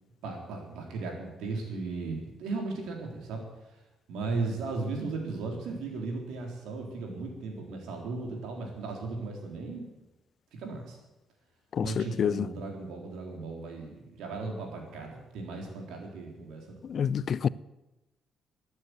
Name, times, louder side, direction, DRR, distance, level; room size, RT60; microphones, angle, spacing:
voice 1, 0.2-3.4 4.1-9.9 10.5-11.0 11.8-16.8, right 3 dB, 90° right, 3.8 m, -36 dB
voice 2, 11.8-12.4 16.9-17.5, left 7 dB, 55° left, 0.4 m, -27 dB
12.5 x 9.6 x 9.3 m
cardioid pair, 90°, 0 cm